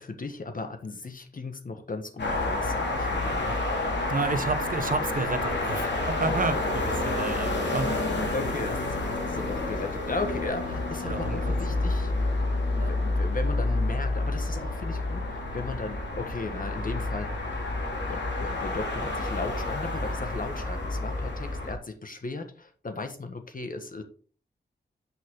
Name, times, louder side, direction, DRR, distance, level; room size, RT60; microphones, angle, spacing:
voice 1, 0.0-3.6 7.6-7.7 8.3-12.1 12.7-17.4 18.1-24.0, left 3 dB, 50° left, 7 dB, 1.7 m, -36 dB
sound 1, 2.2-21.7, left 2 dB, 80° left, 2.8 m, -29 dB
voice 2, 4.1-8.2 11.1-11.6 12.8-12.9, right 3 dB, 50° right, 11 dB, 0.9 m, -31 dB
10.5 x 6.0 x 3.9 m, 0.42 s
cardioid pair, 65°, 18 cm